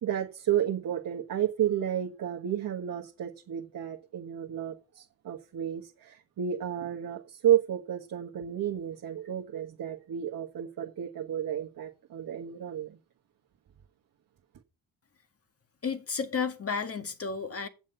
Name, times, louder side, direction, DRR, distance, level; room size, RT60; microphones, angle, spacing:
voice 1, 0.0-13.0, right 10 dB, 50° right, 1.5 m, -31 dB
voice 2, 15.8-17.7, left 5 dB, 35° left, 1.9 m, -32 dB
9.3 x 7.3 x 5.2 m
supercardioid pair, 65°, 42 cm